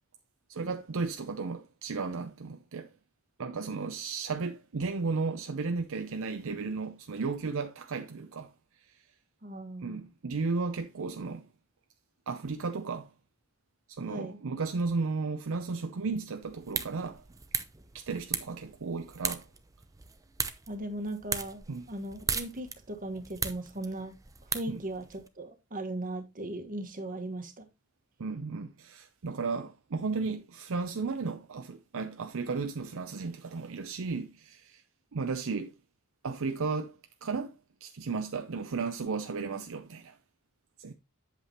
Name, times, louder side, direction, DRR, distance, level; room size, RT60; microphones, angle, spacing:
voice 1, 0.5-2.9 3.4-8.5 8.9-9.0 9.8-11.5 12.3-13.1 13.9-17.2 17.9-19.5 21.7-21.9 24.7-24.8 28.2-34.8 35.1-35.7 36.2-37.6 37.8-40.2 40.8-40.9, right 4 dB, 65° right, 0.6 m, -34 dB
voice 2, 9.4-10.1 14.0-14.4 20.7-24.1 24.5-27.7, right 1 dB, 40° right, 1.4 m, -38 dB
sound 1, 16.4-25.3, right 5 dB, 15° right, 0.7 m, -38 dB
8.2 x 7.6 x 2.9 m
head